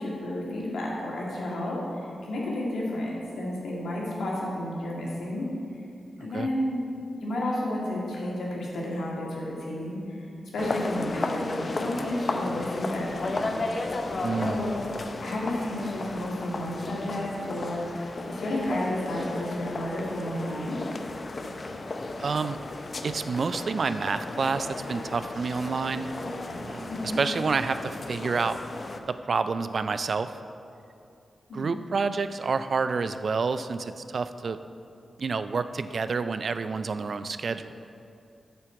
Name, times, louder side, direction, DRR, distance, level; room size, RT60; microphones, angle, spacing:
voice 1, 0.0-5.5 6.2-6.9 7.2-10.3 10.5-13.5 14.4-14.8 15.2-20.8 26.9-27.2 31.5-31.7, left 1 dB, 85° left, -4 dB, 2.0 m, -31 dB
sound 1, 10.6-29.0, left 2 dB, 50° left, 0.6 m, -34 dB
voice 2, 14.2-14.6 22.2-22.6 23.0-26.1 26.6-28.6 29.1-30.3 31.5-34.6 35.2-37.8, right 4 dB, 65° right, 11 dB, 0.4 m, -28 dB
8.5 x 4.5 x 7.3 m, 2.6 s
cardioid pair, 55°, 0 cm